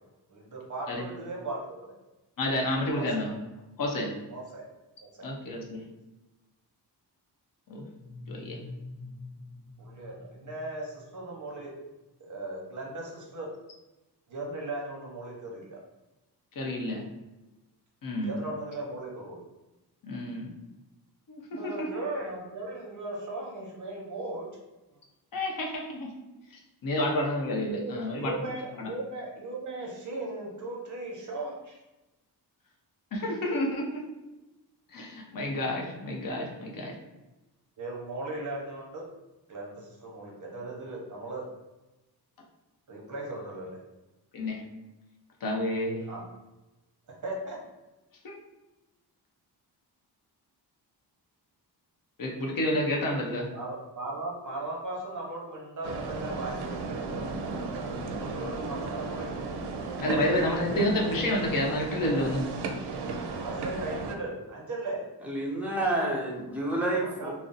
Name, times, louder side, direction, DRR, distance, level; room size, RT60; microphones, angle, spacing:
voice 1, 0.3-1.8 3.0-3.3 4.3-4.7 5.0-5.5 9.8-11.7 12.2-13.5 14.3-15.8 18.2-19.4 21.5-24.5 27.7-31.8 37.8-39.0 39.5-41.5 42.9-43.8 46.1-46.2 47.2-47.6 53.5-57.3 58.2-59.4 63.4-65.0 67.0-67.3, right 2 dB, 45° right, -1 dB, 0.8 m, -37 dB
voice 2, 2.4-3.3 3.8-4.1 5.2-5.8 7.7-7.9 8.3-8.6 16.6-17.0 18.0-18.3 20.0-20.5 21.3-22.0 25.3-26.1 26.5-28.5 28.8-28.9 33.1-34.0 34.9-37.0 44.3-44.6 45.4-46.1 48.2-48.4 52.2-53.6 57.9-58.3 58.7-58.8 60.0-62.5, left 1 dB, 55° left, -1 dB, 0.7 m, -30 dB
sound 1, 7.9-11.6, left 2 dB, 75° left, 1.0 m, -46 dB
sound 2, 55.8-64.2, right 3 dB, 75° right, 0.5 m, -34 dB
voice 3, 65.2-67.3, right 1 dB, 5° right, -4 dB, 0.6 m, -29 dB
2.5 x 2.0 x 3.9 m, 1.0 s
wide cardioid pair, 140°, 40 cm